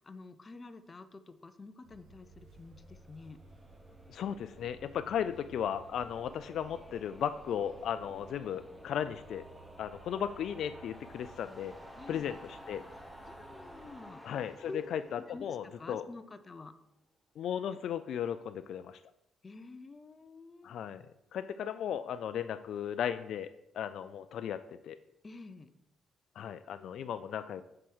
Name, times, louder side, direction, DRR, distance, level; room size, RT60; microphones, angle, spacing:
voice 1, 0.0-3.4 12.0-12.3 12.9-14.3 14.7-14.8 15.3-16.7 19.4-20.8 25.2-25.7, left 3 dB, 30° left, 11 dB, 0.7 m, -49 dB
sound 1, 1.8-14.0, right 4 dB, 75° right, 1.5 m, -57 dB
sound 2, 2.2-16.5, equal, ahead, 1.1 m, -54 dB
voice 2, 4.1-9.4 9.8-11.7 12.1-12.8 14.2-16.0 17.4-19.0 20.6-21.0 21.3-23.5 23.7-25.0 26.4-27.6, left 9 dB, 70° left, 11 dB, 0.4 m, -36 dB
7.7 x 4.8 x 6.1 m, 0.83 s
cardioid pair, 90°, 0 cm